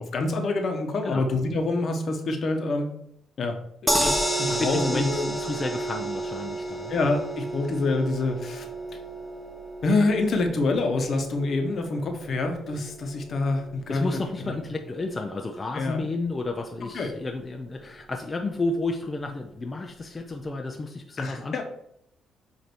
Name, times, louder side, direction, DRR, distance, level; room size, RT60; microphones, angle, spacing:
voice 1, 0.0-2.9 3.4-3.6 3.8-5.3 6.9-8.7 9.8-14.1 14.4-14.6 15.7-16.1 16.9-17.1 21.2-21.6, left 3 dB, 55° left, 4 dB, 1.2 m, -26 dB
sound 1, 3.9-16.1 16.5-16.6 16.9-17.0, right 1 dB, ahead, 1.1 m, -32 dB
voice 2, 4.5-6.9 12.8-12.9 13.9-21.6, left 3 dB, 25° left, 3 dB, 0.7 m, -31 dB
8.2 x 2.9 x 4.6 m, 0.75 s
cardioid pair, 90°, 0 cm